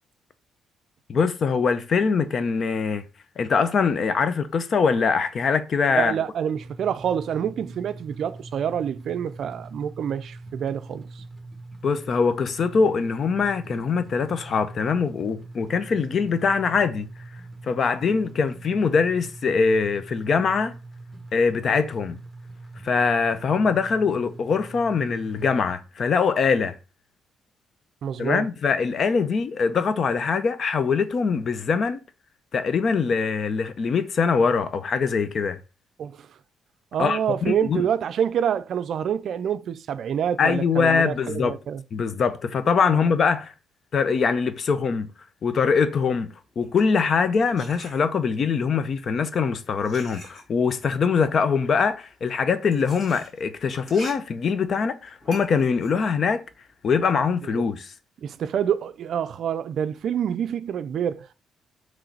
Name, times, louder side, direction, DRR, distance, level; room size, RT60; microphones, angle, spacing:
voice 1, 1.1-3.0 3.4-6.1 11.8-17.1 17.6-20.8 21.3-22.2 22.8-26.8 28.2-32.0 32.5-35.6 37.0-37.8 40.4-41.5 41.9-43.5 43.9-45.1 45.4-56.4 56.8-57.9, left 5 dB, 50° left, 0.5 m, -23 dB
voice 2, 5.9-11.2 28.0-28.5 36.0-36.2 36.9-41.8 42.9-43.0 57.5-57.7 58.2-61.3, right 8 dB, 65° right, 0.4 m, -27 dB
sound 1, 6.5-25.7, right 2 dB, 5° right, 1.2 m, -42 dB
sound 2, 46.5-48.5 49.2-57.1, left 1 dB, 35° left, 2.2 m, -45 dB
3.9 x 3.1 x 4.4 m
cardioid pair, 90°, 0 cm